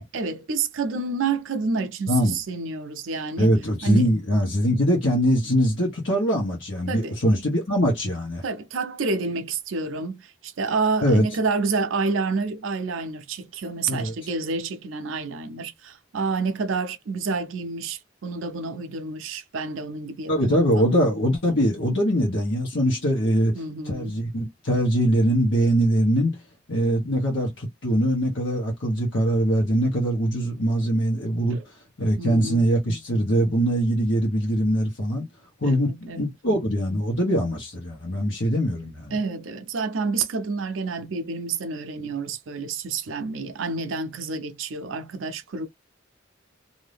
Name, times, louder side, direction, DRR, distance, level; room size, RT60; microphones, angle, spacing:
voice 1, 0.0-3.5 3.8-4.1 6.9-7.2 8.4-21.0 23.5-24.2 31.5-31.6 32.2-32.7 35.6-36.3 39.1-45.7, right 4 dB, 80° right, 0.5 m, -29 dB
voice 2, 2.1-2.4 3.4-8.4 11.0-11.2 13.9-14.1 20.3-23.5 23.8-26.3 26.7-31.6 32.0-35.3 35.6-39.1, equal, 70° left, 1.1 m, -22 dB
2.6 x 2.6 x 3.3 m
head